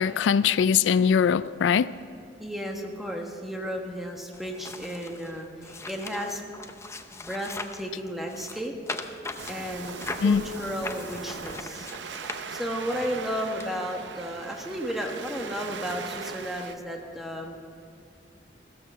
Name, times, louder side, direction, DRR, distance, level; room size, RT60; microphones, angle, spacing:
voice 1, 0.0-1.9 10.2-10.4, left 7 dB, 85° left, 0.3 m, -21 dB
voice 2, 2.4-6.4 7.1-8.7 9.5-11.9 12.5-17.5, equal, ahead, 1.4 m, -33 dB
sound 1, 4.3-7.9 8.3-12.9 13.6-13.7, left 3 dB, 15° left, 0.6 m, -39 dB
Waves surf, 9.4-16.7, right 5 dB, 75° right, 0.7 m, -40 dB
15.0 x 13.5 x 5.6 m
head